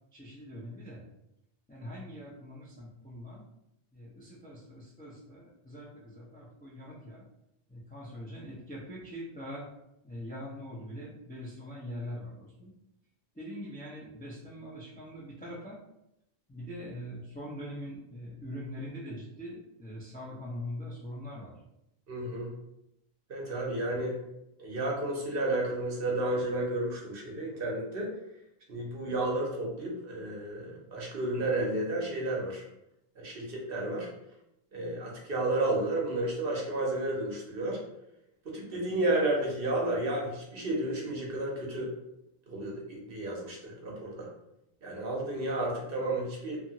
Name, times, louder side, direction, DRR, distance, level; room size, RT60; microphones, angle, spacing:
voice 1, 0.1-1.0 1.7-3.4 3.9-7.2 7.7-9.7 10.0-12.7 13.3-15.8 16.5-21.5, equal, 15° left, -5 dB, 0.4 m, -42 dB
voice 2, 22.1-22.5 23.3-24.2 24.6-28.1 28.7-32.6 33.2-34.1 34.7-37.8 38.4-41.9 42.5-44.3 44.8-46.6, right 2 dB, 60° right, -2 dB, 0.9 m, -32 dB
2.8 x 2.4 x 2.7 m, 0.83 s
omnidirectional pair, 1.1 m